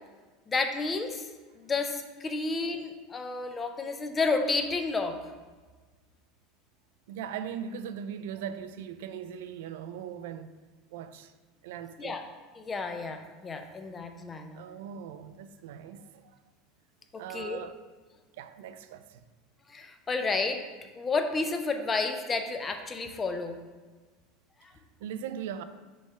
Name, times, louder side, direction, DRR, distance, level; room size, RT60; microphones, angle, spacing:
voice 1, 0.5-1.3 1.5-5.2 12.0-12.2 12.6-14.6 17.3-17.6 19.7-20.7 21.0-23.6, left 3 dB, 15° left, 0.5 m, -31 dB
voice 2, 7.1-10.6 10.9-11.3 11.6-12.2 14.5-16.4 17.2-17.8 18.3-19.2 24.7-25.6, right 8 dB, 85° right, 0.4 m, -40 dB
6.2 x 3.4 x 5.6 m
supercardioid pair, 165°, 0 cm